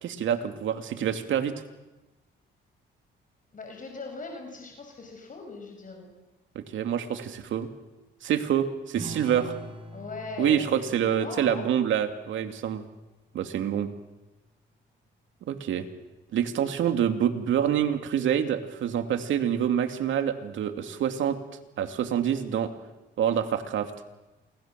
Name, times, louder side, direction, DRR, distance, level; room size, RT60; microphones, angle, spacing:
voice 1, 0.0-1.5 6.5-7.7 8.2-9.5 10.4-12.9 13.3-13.9 15.5-15.9 16.3-21.4 21.8-22.7 23.2-23.9, right 9 dB, 75° right, 8 dB, 2.6 m, -26 dB
voice 2, 3.5-6.1 9.9-11.6, left 3 dB, 40° left, 3 dB, 5.6 m, -40 dB
sound 1, 8.9-14.0, right 2 dB, 25° right, 6.3 m, -45 dB
28.5 x 23.5 x 7.6 m, 1.1 s
cardioid pair, 90°, 20 cm